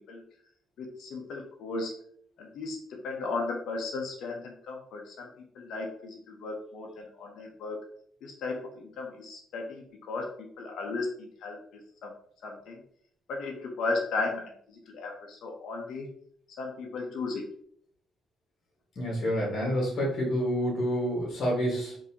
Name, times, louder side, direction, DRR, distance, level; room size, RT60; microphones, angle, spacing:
voice 1, 0.8-2.0 2.4-7.8 8.2-11.6 12.0-12.2 12.4-12.8 13.3-16.1 16.6-17.4, left 3 dB, 75° left, 1 dB, 0.7 m, -35 dB
voice 2, 18.9-22.0, equal, 55° left, -2 dB, 1.5 m, -28 dB
3.8 x 2.7 x 2.8 m, 0.63 s
cardioid pair, 90°, 0 cm